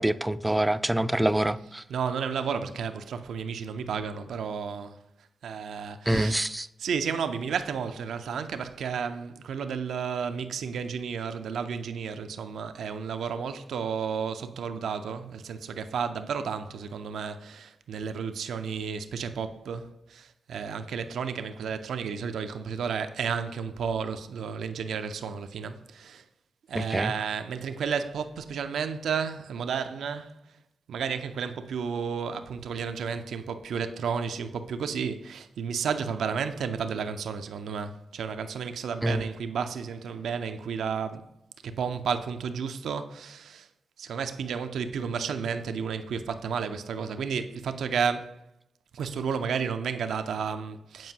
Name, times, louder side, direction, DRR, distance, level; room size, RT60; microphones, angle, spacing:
voice 1, 0.0-1.8 6.1-6.7 26.7-27.1 39.0-39.2, right 1 dB, 15° right, 0.3 m, -26 dB
voice 2, 1.9-5.0 5.4-26.2 26.7-30.4 30.9-41.3 41.6-43.7 44.0-48.4 48.9-51.1, right 6 dB, 85° right, 0.4 m, -32 dB
7.6 x 4.5 x 2.8 m
cardioid pair, 50°, 0 cm